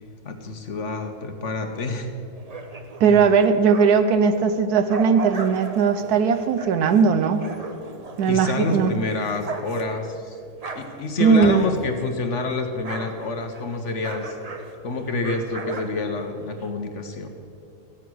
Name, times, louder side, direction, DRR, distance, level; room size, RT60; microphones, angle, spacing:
voice 1, 0.2-2.1 3.0-3.2 8.3-10.4 10.7-14.3 14.8-17.3, left 3 dB, 55° left, 5 dB, 1.2 m, -28 dB
sound 1, 2.4-4.2 4.6-12.2 12.4-16.7, right 3 dB, 35° right, 0.7 m, -38 dB
voice 2, 3.0-7.5 8.2-9.0 11.2-11.6, right 6 dB, 80° right, 9 dB, 1.2 m, -18 dB
sound 2, 11.4-13.4, left 7 dB, 80° left, 1.5 m, -36 dB
14.5 x 8.8 x 6.2 m, 2.5 s
omnidirectional pair, 1.7 m